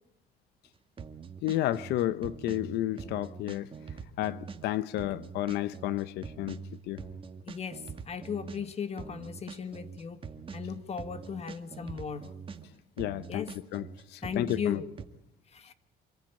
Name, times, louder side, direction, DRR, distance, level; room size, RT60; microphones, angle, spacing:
sound 1, 1.0-12.7 13.0-15.1, right 6 dB, 30° right, 2.0 m, -44 dB
voice 1, 1.4-3.7 4.2-6.6 6.9-7.0 13.0-13.5 13.7-13.8 14.1-14.8, left 14 dB, 80° left, 0.8 m, -31 dB
voice 2, 7.5-10.3 10.5-12.3 13.3-13.6 14.2-14.9 15.5-15.7, left 7 dB, 40° left, 1.8 m, -37 dB
26.0 x 15.0 x 8.8 m
cardioid pair, 110°, 17 cm